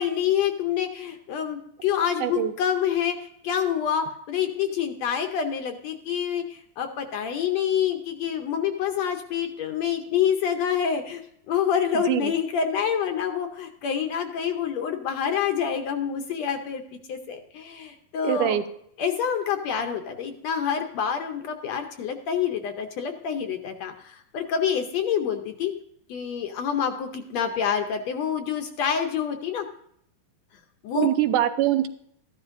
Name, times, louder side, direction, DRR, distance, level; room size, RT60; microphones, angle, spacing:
voice 1, 0.0-11.2 11.5-16.8 17.1-18.6 19.0-25.7 26.1-29.7 30.8-31.1, left 8 dB, 70° left, 6 dB, 1.8 m, -27 dB
voice 2, 2.2-2.5 11.9-12.3 18.2-18.6 30.9-31.9, right 12 dB, 80° right, 10 dB, 2.2 m, -23 dB
14.0 x 11.5 x 2.6 m, 0.71 s
omnidirectional pair, 3.7 m